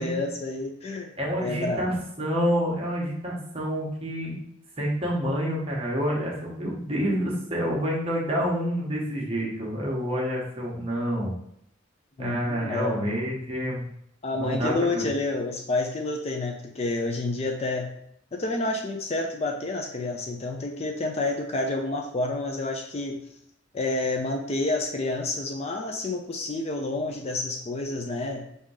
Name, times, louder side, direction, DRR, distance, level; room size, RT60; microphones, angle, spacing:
voice 1, 0.0-1.1 1.4-1.8 12.2-13.1 14.2-17.9 18.3-23.2 23.7-28.4, left 2 dB, 30° left, 2 dB, 0.4 m, -29 dB
voice 2, 1.2-4.4 4.8-11.3 12.2-13.8 14.3-15.0, equal, 30° right, -3 dB, 1.1 m, -28 dB
3.7 x 2.7 x 4.7 m, 0.72 s
head